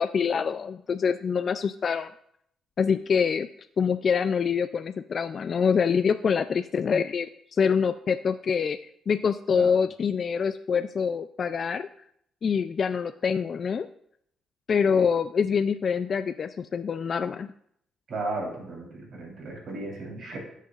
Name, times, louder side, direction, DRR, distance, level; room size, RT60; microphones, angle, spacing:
voice 1, 0.0-2.1 2.8-3.5 3.8-8.8 9.1-11.9 12.4-13.9 14.7-17.5, left 6 dB, 50° left, 10 dB, 0.3 m, -25 dB
voice 2, 18.1-20.4, right 2 dB, 60° right, -1 dB, 3.6 m, -35 dB
17.0 x 6.6 x 2.5 m, 0.70 s
cardioid pair, 90°, 0 cm